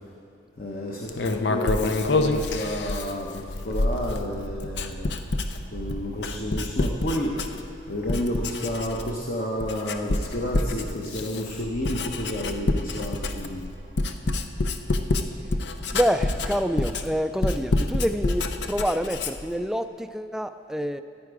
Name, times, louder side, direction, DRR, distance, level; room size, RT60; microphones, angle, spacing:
voice 1, 0.6-5.4 5.7-13.7, left 1 dB, 50° left, 1.0 m, -31 dB
Writing, 1.1-7.8 8.1-9.3 9.6-19.5, left 2 dB, 70° left, 0.6 m, -27 dB
sound 1, 3.7-8.7 9.2-9.3 10.6-19.2 19.9-20.0, right 2 dB, 50° right, 0.5 m, -43 dB
voice 2, 15.9-21.0, equal, 5° right, 0.3 m, -27 dB
14.5 x 10.0 x 4.9 m
head